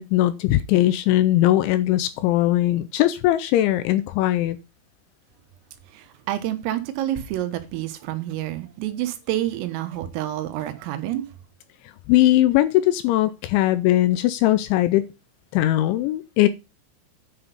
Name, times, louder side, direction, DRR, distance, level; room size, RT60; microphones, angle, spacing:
voice 1, 0.0-4.6 12.1-15.1 15.5-16.5, left 14 dB, 80° left, 2.8 m, -20 dB
voice 2, 5.9-11.3, right 13 dB, 85° right, 3.8 m, -28 dB
9.5 x 6.0 x 5.2 m
omnidirectional pair, 5.8 m